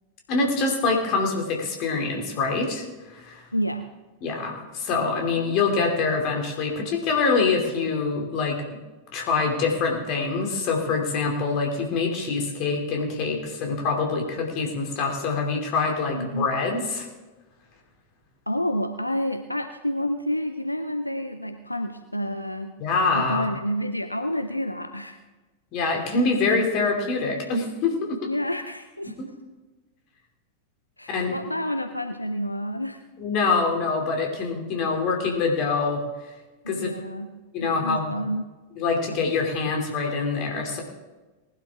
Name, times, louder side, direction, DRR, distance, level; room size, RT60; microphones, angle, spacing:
voice 1, 0.3-2.8 3.1-3.4 4.2-8.6 9.1-17.1 22.8-23.5 25.7-28.2 29.2-29.3 31.1-31.3 33.2-36.0 36.7-36.9 37.5-38.1 38.8-40.8, left 4 dB, 40° left, 2 dB, 3.0 m, -25 dB
voice 2, 3.5-3.9 16.1-16.6 18.5-22.8 23.1-25.2 28.2-29.1 31.0-33.0 36.6-38.4, equal, 85° left, 8 dB, 0.6 m, -29 dB
19.5 x 12.0 x 3.7 m, 1.2 s
figure-of-eight pair, 90°, 0 cm